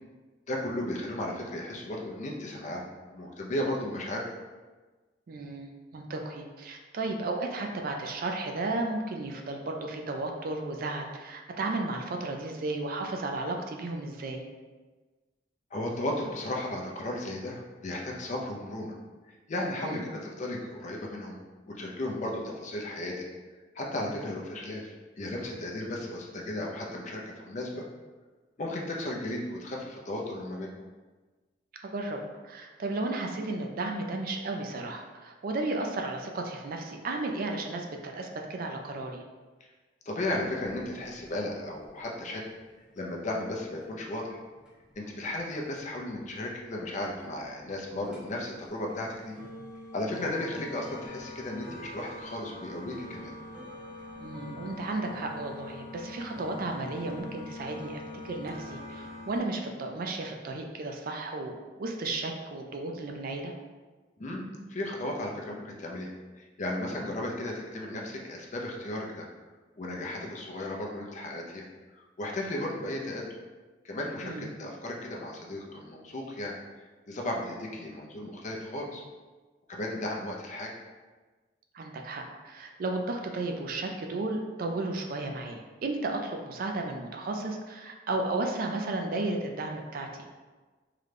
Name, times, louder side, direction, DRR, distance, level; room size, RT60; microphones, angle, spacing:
voice 1, 0.5-4.3 15.7-19.0 19.3-21.4 21.7-23.3 23.7-27.9 28.6-30.7 39.6-39.7 40.0-42.5 43.0-44.4 45.0-49.4 49.9-53.3 64.2-69.3 69.8-71.7 71.9-73.3 73.8-76.5 77.1-79.0 79.7-80.7, left 1 dB, 40° left, -1 dB, 0.5 m, -35 dB
voice 2, 5.3-14.5 19.8-20.1 31.8-39.2 54.2-63.5 74.2-74.5 81.7-90.3, right 2 dB, 50° right, 3 dB, 0.4 m, -34 dB
sound 1, 40.2-59.4, left 2 dB, 5° right, 0.7 m, -45 dB
3.7 x 2.2 x 3.2 m, 1.3 s
head